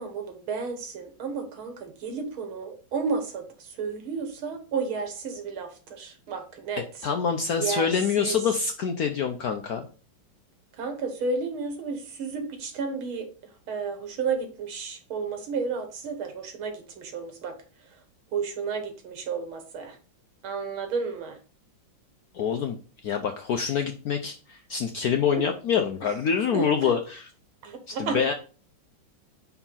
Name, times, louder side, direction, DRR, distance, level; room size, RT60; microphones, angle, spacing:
voice 1, 0.0-6.8 7.6-7.9 8.2-8.4 10.8-13.3 13.7-17.5 18.3-20.0 20.4-21.4 25.3-25.5 26.5-26.9 27.6-28.2, right 5 dB, 80° right, 6 dB, 2.2 m, -32 dB
voice 2, 7.0-9.8 22.3-22.8 23.0-27.3 28.0-28.3, left 7 dB, 70° left, 6 dB, 0.8 m, -26 dB
5.5 x 4.6 x 5.5 m, 0.37 s
omnidirectional pair, 2.3 m